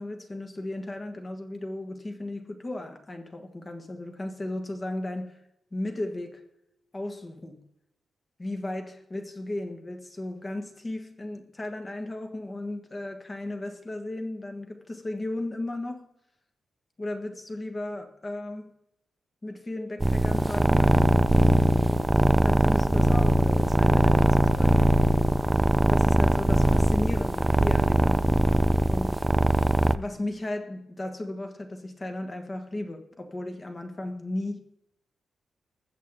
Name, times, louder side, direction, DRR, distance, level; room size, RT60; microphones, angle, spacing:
voice 1, 0.0-5.4 5.7-6.4 6.9-7.6 8.4-16.1 17.0-18.7 19.4-21.3 22.4-24.9 25.9-28.3 28.9-29.3 29.9-34.6, left 1 dB, 20° left, 1.5 m, -35 dB
sound 1, 20.0-30.0, right 1 dB, 10° right, 0.4 m, -21 dB
20.5 x 7.5 x 3.7 m
wide cardioid pair, 170°, 0 cm